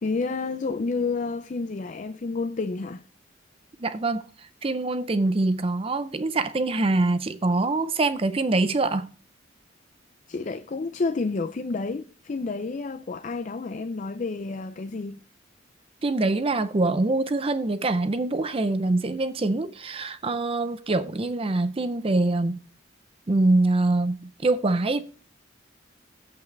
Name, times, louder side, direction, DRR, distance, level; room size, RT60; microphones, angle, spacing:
voice 1, 0.0-3.0 10.3-15.2, left 3 dB, 40° left, 0.4 m, -30 dB
voice 2, 3.8-9.1 16.0-22.6 23.3-25.0, right 2 dB, 30° right, 0.5 m, -24 dB
9.6 x 8.1 x 3.2 m
head